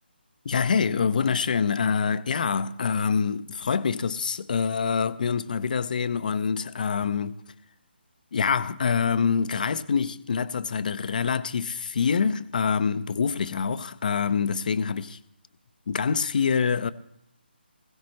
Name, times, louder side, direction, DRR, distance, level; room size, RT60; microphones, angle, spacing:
voice 1, 0.4-7.4 8.3-15.2 15.9-16.9, left 6 dB, 50° left, 0.7 m, -25 dB
20.5 x 16.5 x 3.2 m
figure-of-eight pair, 150°, 6 cm